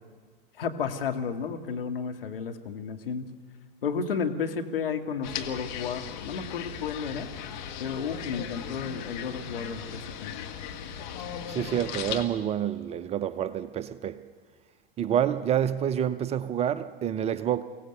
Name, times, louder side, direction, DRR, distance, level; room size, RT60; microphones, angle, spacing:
voice 1, 0.6-3.3 3.8-7.3 7.8-10.3, left 6 dB, 70° left, 1.9 m, -32 dB
sound 1, 5.2-12.2, left 8 dB, 55° left, 1.7 m, -37 dB
voice 2, 11.5-14.2 15.0-17.6, right 9 dB, 20° right, 0.6 m, -28 dB
23.0 x 17.0 x 6.7 m
figure-of-eight pair, 100°, 29 cm